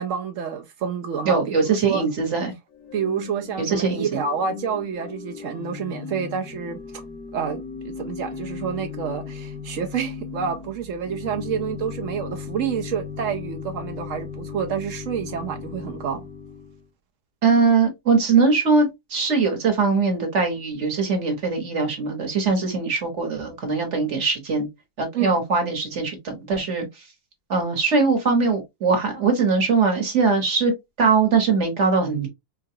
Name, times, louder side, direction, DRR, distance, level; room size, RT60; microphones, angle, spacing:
voice 1, 0.0-2.1 2.9-7.0 7.3-16.2 25.1-25.4, right 7 dB, 65° right, 0.8 m, -28 dB
voice 2, 1.2-2.5 3.6-4.2 17.4-24.7 25.0-27.0 27.5-30.7 31.0-32.3, right 4 dB, 50° right, 1.4 m, -21 dB
Organ / Church bell, 2.7-16.9, left 6 dB, 90° left, 1.8 m, -36 dB
4.6 x 2.3 x 2.7 m
omnidirectional pair, 1.7 m